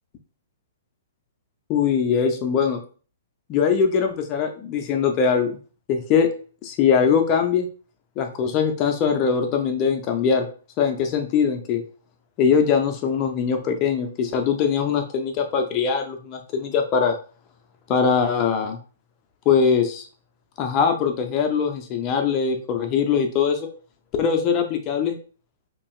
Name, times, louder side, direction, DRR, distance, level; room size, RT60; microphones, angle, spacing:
voice 1, 1.7-2.8 3.5-5.6 5.9-6.3 6.6-7.7 8.2-10.5 10.8-11.8 12.4-17.1 17.9-18.8 19.5-20.1 20.6-23.7 24.2-25.2, left 6 dB, 30° left, 5 dB, 0.5 m, -21 dB
5.4 x 2.7 x 2.3 m, 0.39 s
hypercardioid pair, 145°, 0 cm